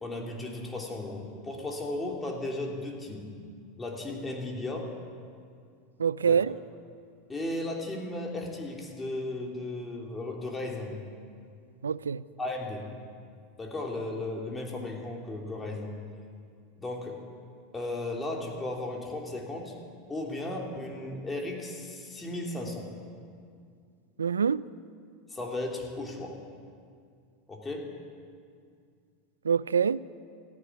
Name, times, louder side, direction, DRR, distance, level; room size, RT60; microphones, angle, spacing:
voice 1, 0.0-3.3 3.8-4.9 6.2-6.4 7.3-11.0 12.4-12.8 13.6-15.9 16.8-17.2 17.7-19.7 20.1-22.9 25.3-26.4 27.5-27.9, left 2 dB, 15° left, 3.1 m, -35 dB
voice 2, 6.0-6.6 11.8-12.2 24.2-24.6 29.4-30.0, right 6 dB, 90° right, 0.3 m, -25 dB
15.0 x 9.8 x 9.6 m
hypercardioid pair, 90°, 0 cm